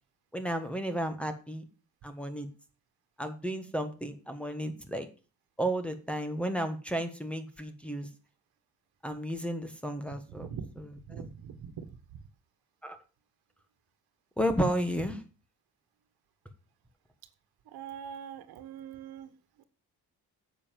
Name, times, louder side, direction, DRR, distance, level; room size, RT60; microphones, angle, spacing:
voice 1, 0.3-1.6 2.0-2.5 3.2-5.1 5.6-8.1 9.0-10.5 11.1-11.3 12.8-13.0 14.4-15.2, equal, 5° left, 1.2 m, -32 dB
voice 2, 10.1-10.7 11.0-12.2 17.6-19.6, right 7 dB, 80° right, 1.5 m, -43 dB
9.7 x 7.2 x 7.5 m
cardioid pair, 170°, 37 cm